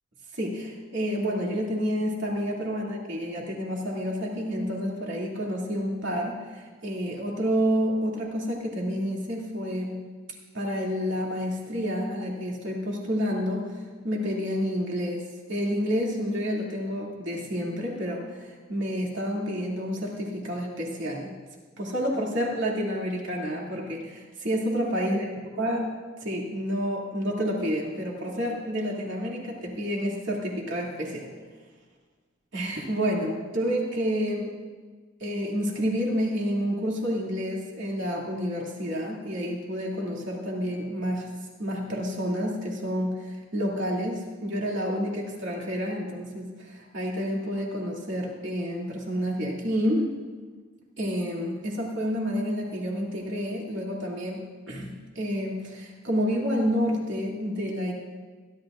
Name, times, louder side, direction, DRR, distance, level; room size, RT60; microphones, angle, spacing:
voice 1, 0.3-9.9 10.5-15.2 15.5-21.3 21.8-25.3 25.6-25.9 26.2-31.3 32.5-34.5 35.2-41.3 41.6-50.2 51.0-57.9, equal, 65° right, -3 dB, 2.7 m, -29 dB
22.5 x 11.5 x 2.6 m, 1.4 s
head